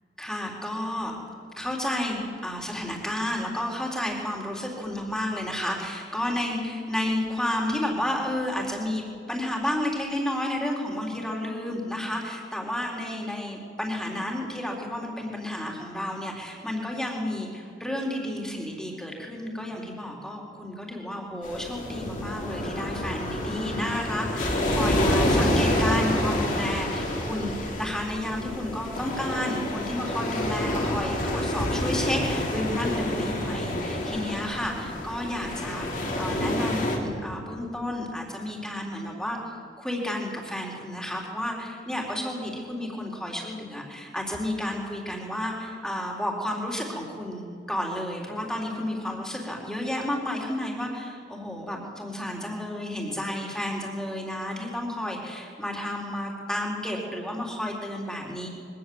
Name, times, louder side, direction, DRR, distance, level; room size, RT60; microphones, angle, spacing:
voice 1, 0.2-1.2 1.6-39.4 39.8-58.5, left 1 dB, 5° left, -1 dB, 3.8 m, -31 dB
sound 1, 21.4-37.0, left 1 dB, 45° left, 3.7 m, -28 dB
23.5 x 18.0 x 7.9 m, 2.5 s
head